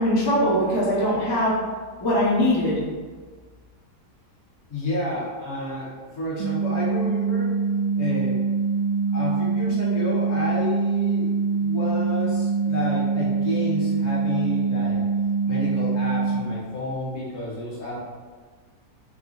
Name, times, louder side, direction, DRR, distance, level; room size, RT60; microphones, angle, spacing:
voice 1, 0.0-1.6 2.0-2.7, equal, 35° left, -7 dB, 0.4 m, -21 dB
voice 2, 4.7-7.5 7.9-8.4 9.1-15.0 15.5-18.0, left 2 dB, 50° left, -6 dB, 1.0 m, -30 dB
sound 1, 6.4-16.4, right 5 dB, 85° right, 1.2 m, -24 dB
3.6 x 2.0 x 3.7 m, 1.5 s
omnidirectional pair, 1.8 m